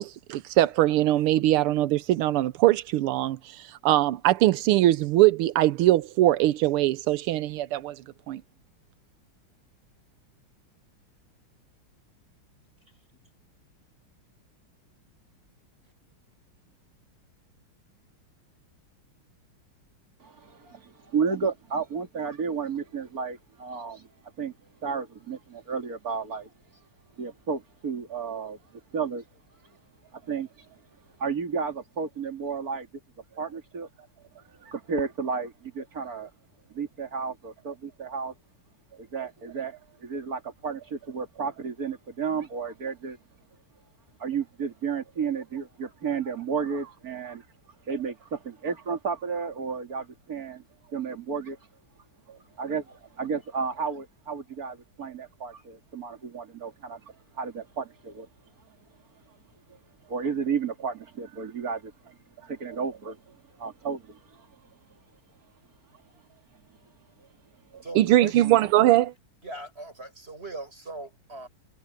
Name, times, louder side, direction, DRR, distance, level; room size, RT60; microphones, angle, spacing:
voice 1, 0.0-8.0 8.3-8.4 67.9-69.1, right 15 dB, 85° right, 1.6 m, -22 dB
voice 2, 20.2-24.1 24.4-24.5 24.8-26.8 27.2-28.6 28.9-29.2 29.6-29.8 30.1-30.8 31.2-32.9 33.3-33.9 34.3-36.3 36.7-38.3 38.9-43.2 44.2-47.5 47.8-50.6 50.9-51.6 52.3-58.3 58.6-58.8 59.3-59.4 59.7-59.8 60.0-64.7 65.9-66.0 67.2-67.3 67.7-67.8, right 5 dB, 45° right, 2.9 m, -33 dB
voice 3, 67.8-68.4 69.4-71.5, right 2 dB, 25° right, 7.2 m, -39 dB
omnidirectional pair, 2.4 m